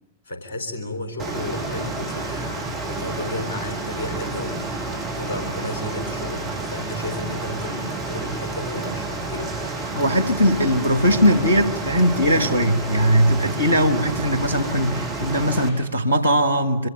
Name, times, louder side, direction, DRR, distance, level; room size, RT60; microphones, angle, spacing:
voice 1, 0.3-9.6, left 2 dB, 65° left, 3.8 m, -33 dB
Rain, 1.2-15.7, right 3 dB, 30° right, 6.9 m, -30 dB
voice 2, 9.9-16.9, equal, 85° left, 1.5 m, -19 dB
26.5 x 23.0 x 9.0 m
figure-of-eight pair, 90°, 0 cm